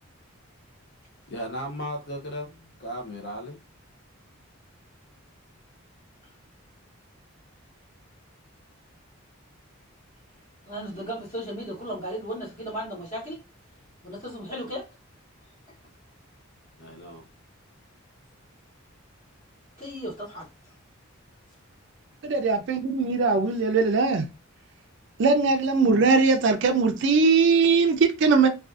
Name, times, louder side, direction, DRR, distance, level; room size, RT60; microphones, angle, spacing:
voice 1, 1.3-3.6 16.8-17.2, equal, 50° left, 0.5 m, -36 dB
voice 2, 10.6-13.4 14.0-14.9 19.8-20.5, equal, 35° left, 1.0 m, -35 dB
voice 3, 22.2-24.3 25.2-28.5, right 4 dB, 55° right, 0.4 m, -20 dB
2.5 x 2.3 x 2.3 m
head